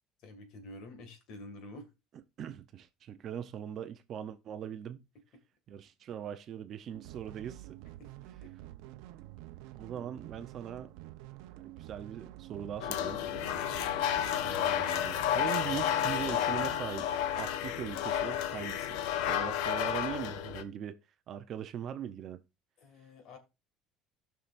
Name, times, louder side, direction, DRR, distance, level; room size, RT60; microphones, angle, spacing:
voice 1, 0.2-1.9 8.0-8.1 22.8-23.4, left 1 dB, 50° left, 2.1 m, -48 dB
voice 2, 2.4-5.0 5.7-7.8 9.7-10.9 11.6-13.2 14.4-21.0 21.3-22.4, right 9 dB, 35° right, 0.7 m, -41 dB
sound 1, 6.9-16.8, right 15 dB, 80° right, 0.7 m, -48 dB
sound 2, 12.8-20.6, left 10 dB, 75° left, 0.7 m, -31 dB
17.0 x 5.8 x 2.6 m
cardioid pair, 165°, 0 cm